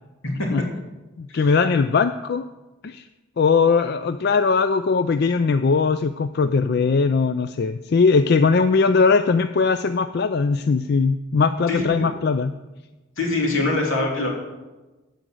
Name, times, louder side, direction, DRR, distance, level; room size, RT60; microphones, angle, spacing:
voice 1, 1.2-2.5 2.8-3.0 3.4-12.5, left 4 dB, 50° left, 10 dB, 0.4 m, -20 dB
voice 2, 11.7-12.1 13.2-14.3, left 2 dB, 80° left, 0 dB, 3.1 m, -24 dB
15.5 x 5.2 x 7.8 m, 1.1 s
head